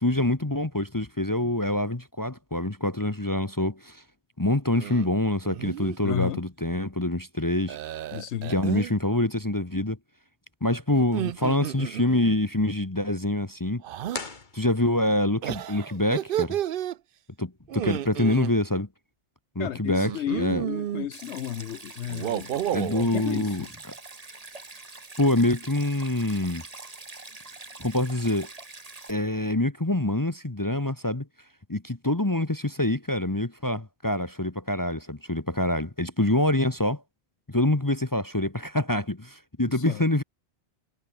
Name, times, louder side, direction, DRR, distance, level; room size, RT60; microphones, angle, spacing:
voice 1, 0.0-4.0 4.4-7.8 8.5-10.0 10.6-13.8 14.5-16.6 17.4-18.9 19.5-20.6 22.7-23.7 25.2-26.6 27.8-28.5 29.1-31.3 31.7-37.0 37.5-40.2, left 1 dB, 15° left, 1.3 m, -26 dB
sound 1, 4.7-5.1 5.4-6.0 7.7-8.9 11.0-12.4 13.8-14.2 15.4-17.0 17.7-18.5 20.0-21.1 22.1-23.1, right 11 dB, 60° right, 0.7 m, -31 dB
voice 2, 6.0-6.4 8.1-8.5 19.6-22.6 23.0-23.7 39.7-40.0, left 11 dB, 75° left, 1.0 m, -32 dB
sound 2, 14.1-15.3, left 4 dB, 45° left, 1.8 m, -39 dB
Stream, 21.1-29.1, right 3 dB, 35° right, 2.0 m, -44 dB
omnidirectional pair, 1.2 m